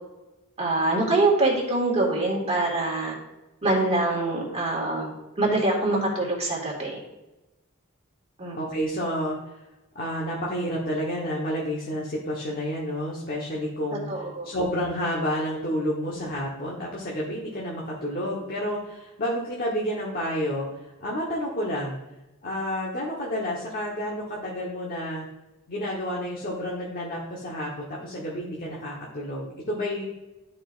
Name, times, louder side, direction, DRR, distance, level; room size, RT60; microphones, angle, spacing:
voice 1, 0.6-3.2 3.6-7.0 8.4-8.6 14.1-14.5, right 2 dB, 30° right, -2 dB, 2.0 m, -24 dB
voice 2, 8.6-9.4 9.9-14.1 14.4-20.7 21.0-22.0 22.4-25.3 25.7-30.0, equal, 45° left, -4 dB, 1.2 m, -30 dB
11.5 x 4.9 x 2.5 m, 1.0 s
head